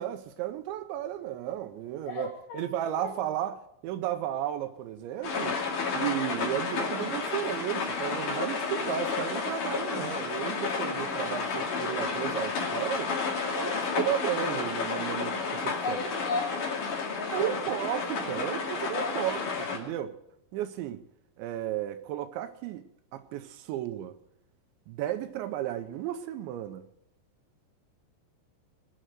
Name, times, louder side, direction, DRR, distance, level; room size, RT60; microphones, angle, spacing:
voice 1, 0.0-3.6 3.8-5.6 5.9-13.1 13.5-16.0 17.3-20.1 20.5-21.0 21.4-22.8 23.1-24.1 24.9-26.8, right 12 dB, 80° right, 2.9 m, -34 dB
voice 2, 2.1-2.7 3.0-3.1 15.8-17.6 18.7-19.2, left 4 dB, 60° left, 2.3 m, -36 dB
sound 1, 5.2-19.8, left 4 dB, 45° left, 3.5 m, -31 dB
sound 2, 5.4-7.3, left 14 dB, 75° left, 5.5 m, -49 dB
21.0 x 7.8 x 7.8 m
omnidirectional pair, 5.5 m